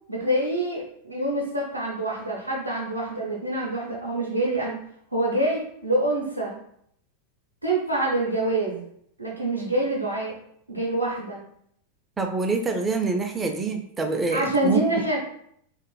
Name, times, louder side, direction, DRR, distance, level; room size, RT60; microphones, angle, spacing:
voice 1, 0.1-4.8 5.1-6.6 7.6-8.8 9.2-10.4 10.7-11.4 14.3-15.2, right 1 dB, 85° right, -3 dB, 0.5 m, -26 dB
voice 2, 12.2-14.8, right 3 dB, 15° right, 4 dB, 0.3 m, -26 dB
2.9 x 2.4 x 2.2 m, 0.68 s
figure-of-eight pair, 90°, 0 cm